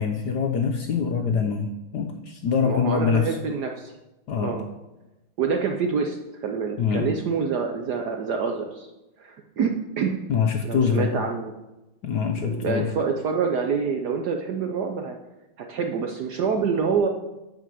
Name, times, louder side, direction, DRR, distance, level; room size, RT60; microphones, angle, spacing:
voice 1, 0.0-3.3 4.3-4.6 6.8-7.1 10.3-11.1 12.0-12.9, left 6 dB, 65° left, 4 dB, 1.0 m, -24 dB
voice 2, 2.6-3.9 4.4-4.6 5.4-8.9 9.2-10.2 10.6-11.5 12.4-15.2 15.6-17.1, right 5 dB, 65° right, 4 dB, 1.0 m, -26 dB
9.6 x 5.0 x 7.0 m, 1.0 s
omnidirectional pair, 2.4 m